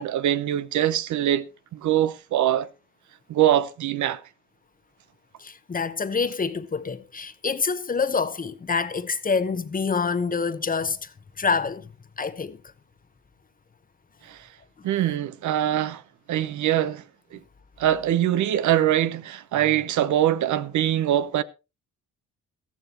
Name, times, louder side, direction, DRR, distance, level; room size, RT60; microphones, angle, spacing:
voice 1, 0.0-1.5 1.7-2.7 3.3-4.2 14.3-14.4 14.8-16.0 16.3-17.0 17.3-17.4 17.8-21.4, right 11 dB, 75° right, 0.9 m, -23 dB
voice 2, 5.4-11.1 11.4-11.9 12.2-12.6, left 5 dB, 30° left, 1.0 m, -26 dB
14.5 x 14.0 x 2.9 m
cardioid pair, 90°, 30 cm